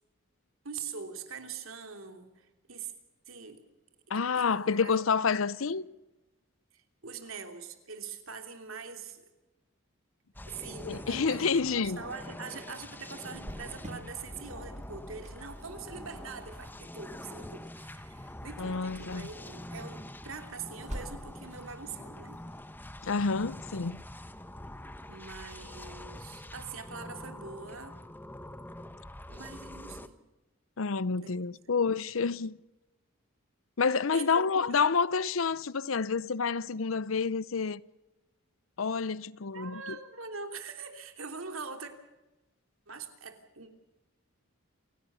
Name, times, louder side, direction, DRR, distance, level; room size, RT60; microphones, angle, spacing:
voice 1, 0.6-2.9 3.3-3.6 4.3-5.0 5.5-5.7 6.7-9.3 10.4-22.4 25.1-28.0 29.3-30.2 31.2-31.4 34.1-34.4 34.7-34.8 39.5-41.9 42.9-43.7, right 5 dB, 75° right, 3.1 m, -43 dB
voice 2, 4.1-5.9 10.8-12.0 18.6-19.3 23.0-24.0 30.8-32.6 33.8-37.8 38.8-39.8, left 5 dB, 70° left, 0.7 m, -29 dB
sound 1, 10.4-30.1, left 1 dB, 10° left, 1.0 m, -45 dB
Cricket, 13.3-24.8, right 1 dB, 35° right, 2.5 m, -49 dB
28.5 x 16.5 x 6.9 m
head